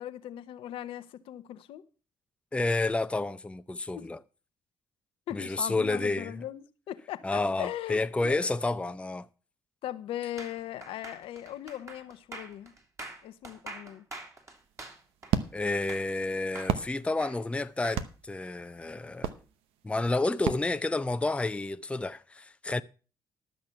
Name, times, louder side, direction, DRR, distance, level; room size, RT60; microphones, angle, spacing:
voice 1, 0.0-1.8 4.0-4.1 5.3-8.4 9.8-12.7 13.2-14.1, left 12 dB, 70° left, 0.9 m, -39 dB
voice 2, 2.5-4.2 5.3-6.4 7.2-9.3 15.5-19.3 19.8-22.8, left 2 dB, 10° left, 0.6 m, -30 dB
sound 1, 10.4-16.2 16.6-18.0, right 2 dB, 30° right, 3.1 m, -45 dB
sound 2, 14.6-21.5, right 9 dB, 75° right, 0.9 m, -36 dB
12.5 x 6.6 x 5.8 m
supercardioid pair, 60°, 10 cm